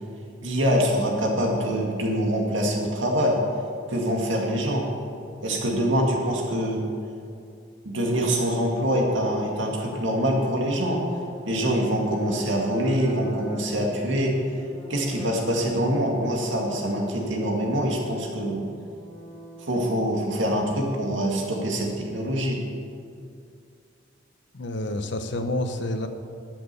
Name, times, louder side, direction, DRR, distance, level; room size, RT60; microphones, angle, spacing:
voice 1, 0.4-3.4 3.9-4.9 5.4-6.9 7.8-11.0 11.5-14.3 14.9-18.6 19.7-22.6, equal, 70° right, 0 dB, 2.1 m, -24 dB
sound 1, 10.5-20.1, equal, 10° left, 1.4 m, -42 dB
voice 2, 24.5-26.1, left 1 dB, 65° left, 7 dB, 0.9 m, -28 dB
12.0 x 7.7 x 6.9 m, 2.4 s
head